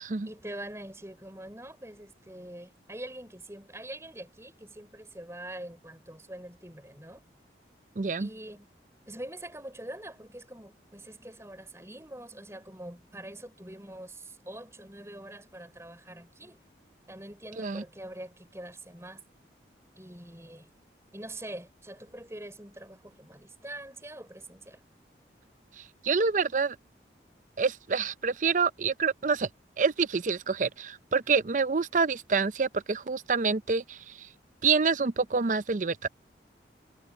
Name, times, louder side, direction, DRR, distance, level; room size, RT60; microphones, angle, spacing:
voice 1, 0.2-7.2 8.2-8.7 9.1-16.6 17.1-19.2 20.0-20.7 21.1-24.8, right 1 dB, 15° right, 5.3 m, -44 dB
voice 2, 8.0-8.3 17.6-17.8 25.8-26.8 27.6-29.5 29.8-34.3 34.6-36.1, right 5 dB, 45° right, 0.5 m, -27 dB
head